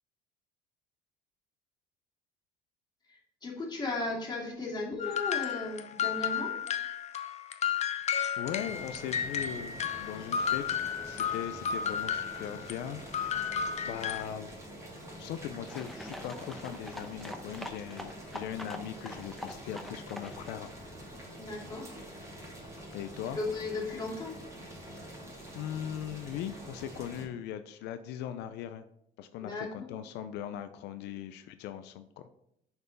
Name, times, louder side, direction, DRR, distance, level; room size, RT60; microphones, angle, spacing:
voice 1, 3.1-6.5 21.4-21.9 23.3-24.4 29.4-29.9, left 3 dB, 25° left, -2 dB, 2.5 m, -36 dB
sound 1, 5.0-14.2, left 8 dB, 40° left, 0.7 m, -33 dB
voice 2, 8.4-13.5 13.8-14.5 15.2-20.7 22.9-23.4 25.0-25.2 25.5-28.8 29.2-32.3, left 10 dB, 90° left, 10 dB, 0.5 m, -40 dB
Boiling, 8.4-27.2, right 1 dB, 15° right, 2.7 m, -46 dB
sound 2, 15.7-20.6, left 1 dB, ahead, 0.8 m, -44 dB
6.8 x 4.5 x 5.1 m, 0.75 s
cardioid pair, 110°, 17 cm